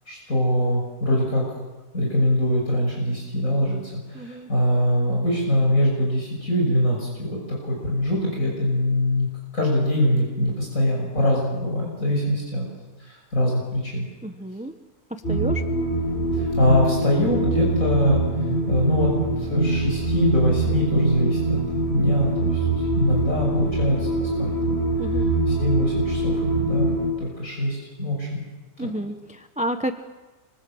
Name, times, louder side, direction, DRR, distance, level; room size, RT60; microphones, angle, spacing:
voice 1, 0.1-1.5 1.9-9.3 9.5-12.7 13.0-14.1 16.3-18.2 18.7-21.6 21.9-24.8 25.6-28.4 28.8-28.9, left 1 dB, 60° left, -2 dB, 6.8 m, -23 dB
voice 2, 4.1-4.5 14.2-14.7 15.1-15.6 25.0-25.3 28.8-29.9, right 1 dB, 5° right, 7 dB, 1.1 m, -30 dB
sound 1, 15.2-27.1, right 2 dB, 40° left, 5.4 m, -24 dB
29.0 x 25.0 x 8.0 m, 1.2 s
omnidirectional pair, 1.6 m